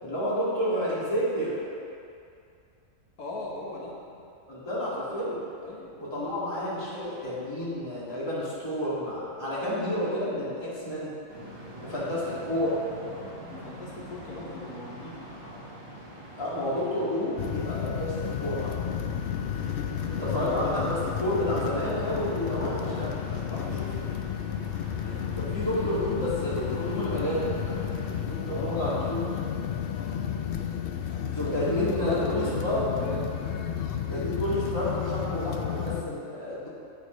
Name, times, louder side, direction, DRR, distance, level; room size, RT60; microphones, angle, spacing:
voice 1, 0.0-1.6 4.5-5.4 6.0-11.1 11.8-12.8 16.4-23.4 25.0-29.2 31.3-33.2 34.1-36.7, left 1 dB, 20° left, -9 dB, 2.2 m, -30 dB
voice 2, 3.2-4.0 5.6-6.0 11.8-12.1 13.1-15.2 20.4-20.7 22.8-23.0 23.4-24.2 28.4-29.1 31.1-33.3, left 2 dB, 90° left, -4 dB, 1.7 m, -39 dB
sound 1, 11.3-28.1, right 1 dB, 40° right, 1.8 m, -45 dB
sound 2, 17.4-36.0, left 9 dB, 70° left, 0.5 m, -32 dB
9.3 x 8.2 x 3.1 m, 2.4 s
omnidirectional pair, 1.5 m